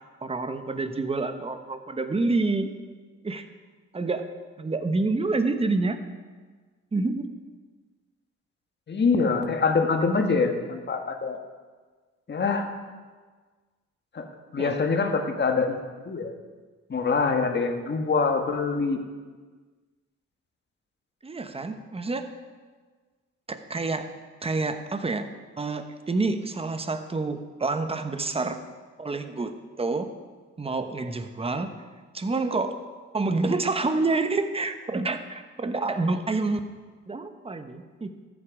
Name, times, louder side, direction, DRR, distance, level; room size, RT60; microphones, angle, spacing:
voice 1, 0.2-2.7 3.2-3.4 3.9-4.2 4.6-6.0 6.9-7.3 14.6-14.8 21.2-22.4 23.5-24.1 24.4-25.3 25.6-28.6 29.0-30.1 30.6-31.8 32.1-32.8 33.1-36.6 37.1-38.2, right 3 dB, 20° right, 8 dB, 1.0 m, -28 dB
voice 2, 8.9-11.4 12.3-12.7 14.1-14.2 14.5-15.8 16.0-16.3 16.9-19.0, left 4 dB, 35° left, 5 dB, 1.5 m, -24 dB
13.5 x 8.9 x 4.9 m, 1.4 s
cardioid pair, 90°, 30 cm